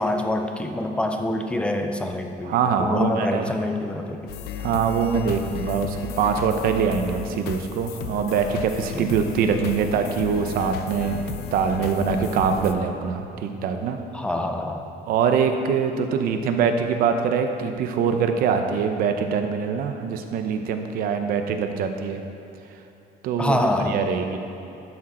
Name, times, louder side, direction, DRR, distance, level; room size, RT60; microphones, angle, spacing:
voice 1, 0.0-4.3 8.9-9.1 14.1-14.8 23.4-24.0, left 1 dB, 5° left, 4 dB, 0.4 m, -26 dB
voice 2, 2.4-3.5 4.6-14.0 15.1-22.2 23.2-23.6 23.9-24.4, right 6 dB, 55° right, 6 dB, 0.7 m, -23 dB
sound 1, 4.3-12.7, left 8 dB, 65° left, 0.6 m, -34 dB
12.0 x 6.4 x 4.3 m, 2.9 s
cardioid pair, 180°, 18 cm